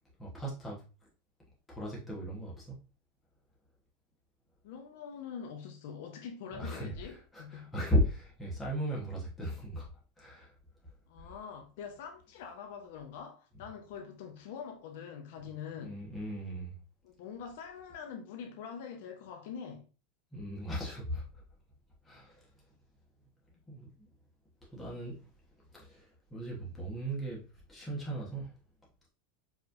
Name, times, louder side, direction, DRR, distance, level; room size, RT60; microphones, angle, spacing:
voice 1, 0.2-0.8 1.7-2.8 6.5-9.9 10.2-10.5 11.2-11.3 15.8-16.8 20.3-21.4 22.0-22.5 23.7-24.1 24.7-25.2 25.8-27.4 27.7-28.5, equal, 10° left, 1.2 m, -36 dB
voice 2, 4.6-7.7 11.1-16.0 17.0-19.9, left 7 dB, 60° left, 0.7 m, -44 dB
4.8 x 3.2 x 2.6 m
supercardioid pair, 170°, 0 cm